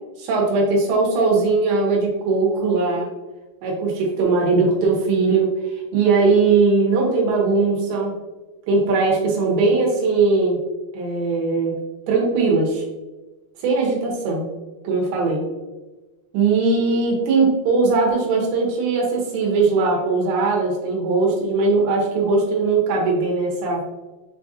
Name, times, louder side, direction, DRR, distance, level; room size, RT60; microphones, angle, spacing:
voice 1, 0.2-3.1 3.6-5.5 5.9-8.1 8.7-10.6 10.9-11.8 12.1-12.8 13.6-14.5 14.8-15.4 16.3-23.8, right 3 dB, 80° right, -1 dB, 3.1 m, -19 dB
6.7 x 2.5 x 2.6 m, 1.2 s
omnidirectional pair, 5.1 m